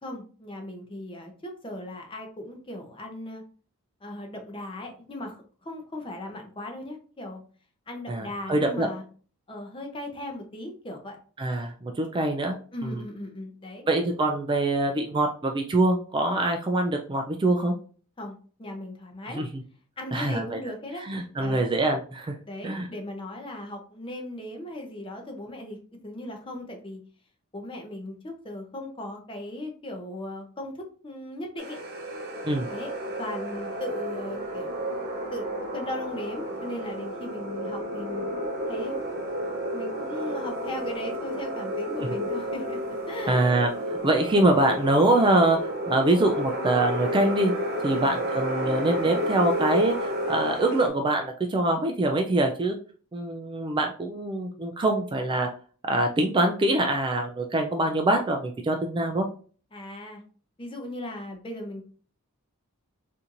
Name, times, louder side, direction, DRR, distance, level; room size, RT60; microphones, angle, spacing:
voice 1, 0.0-3.4 4.0-7.4 7.9-9.0 9.5-11.2 12.7-13.8 18.2-19.4 20.0-21.7 22.5-25.8 26.0-27.0 27.5-31.8 32.7-32.9 33.2-34.8 35.3-38.3 38.7-39.0 39.7-43.4 47.9-48.1 59.7-60.2 60.6-61.8, left 1 dB, 25° left, 3 dB, 0.6 m, -38 dB
voice 2, 8.1-8.9 11.4-12.5 12.8-13.0 13.9-17.7 19.3-19.5 20.1-20.6 21.1-22.3 22.6-22.9 32.4-32.7 43.3-45.6 45.9-47.5 47.8-52.8 53.1-55.5 55.9-59.2, right 2 dB, 20° right, 4 dB, 0.3 m, -24 dB
sound 1, 31.6-50.9, equal, 50° right, 0.7 m, -31 dB
4.3 x 2.6 x 2.5 m, 0.41 s
head